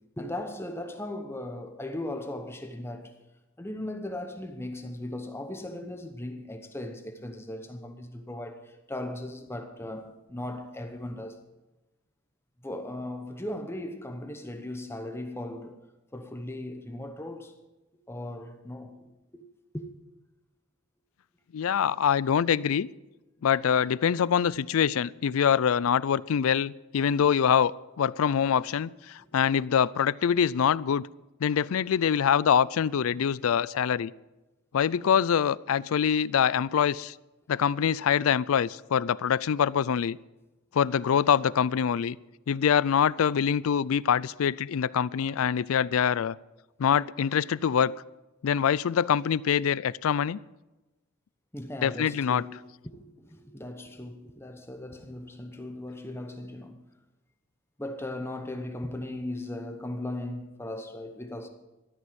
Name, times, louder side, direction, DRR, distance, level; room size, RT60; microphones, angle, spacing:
voice 1, 0.2-3.2 3.6-11.4 12.6-15.8 16.1-17.6 18.1-19.5 19.7-19.9 51.5-52.6 52.8-56.8 57.8-61.5, left 1 dB, 10° left, 0.9 m, -38 dB
voice 2, 21.5-22.9 23.4-31.1 31.4-34.1 34.7-37.1 37.5-40.2 40.7-42.2 42.5-46.4 46.8-47.9 48.4-50.4 51.8-52.4, left 8 dB, 75° left, 0.4 m, -24 dB
13.0 x 9.6 x 7.6 m
head